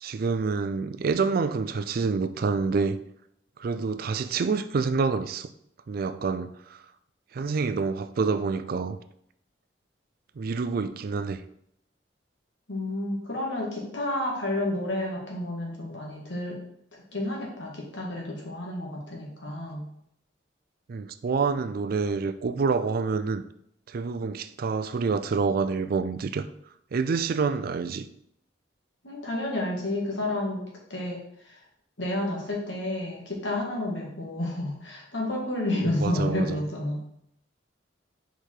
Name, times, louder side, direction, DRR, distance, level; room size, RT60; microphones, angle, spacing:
voice 1, 0.0-3.0 3.6-5.5 5.9-6.8 7.3-9.0 10.4-11.4 20.9-23.4 23.9-26.5 26.9-28.1 35.8-36.6, right 4 dB, 55° right, 0.4 m, -27 dB
voice 2, 12.7-16.6 16.9-19.8 29.0-30.6 30.9-31.2 32.0-37.0, left 1 dB, 85° left, 1.8 m, -30 dB
5.1 x 4.7 x 4.5 m
head